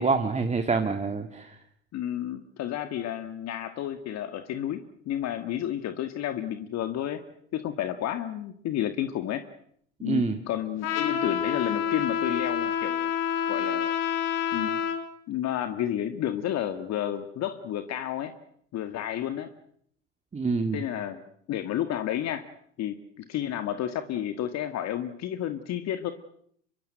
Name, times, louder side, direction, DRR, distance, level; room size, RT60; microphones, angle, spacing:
voice 1, 0.0-1.5 10.1-10.4 20.3-20.8, right 4 dB, 20° right, 6 dB, 1.9 m, -26 dB
voice 2, 1.9-4.8 5.1-7.2 7.5-9.4 10.0-13.1 13.5-13.9 14.5-14.8 15.3-18.3 18.7-19.5 20.7-21.2 21.5-22.4 22.8-26.1, left 11 dB, 45° left, 10 dB, 1.8 m, -31 dB
Trumpet, 10.8-15.0, left 8 dB, 75° left, 4.2 m, -28 dB
25.5 x 23.5 x 7.7 m, 0.67 s
hypercardioid pair, 90°, 36 cm